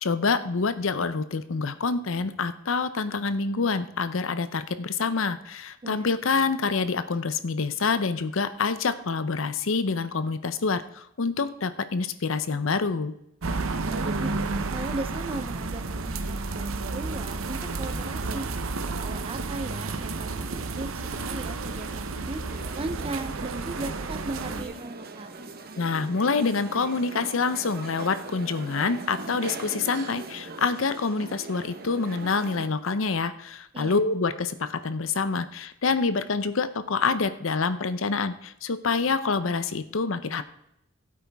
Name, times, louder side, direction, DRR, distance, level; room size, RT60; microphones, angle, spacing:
voice 1, 0.0-13.1 25.8-40.4, left 4 dB, 70° left, 12 dB, 0.7 m, -27 dB
sound 1, 13.4-24.6, right 3 dB, 80° right, 0.8 m, -31 dB
voice 2, 13.8-14.3 14.7-18.5 18.9-20.9 21.3-22.4 22.7-25.4 33.7-34.0, right 2 dB, 30° right, 10 dB, 0.7 m, -37 dB
sound 2, 22.5-32.7, right 3 dB, 50° right, 1.0 m, -40 dB
16.0 x 8.7 x 3.5 m, 0.80 s
head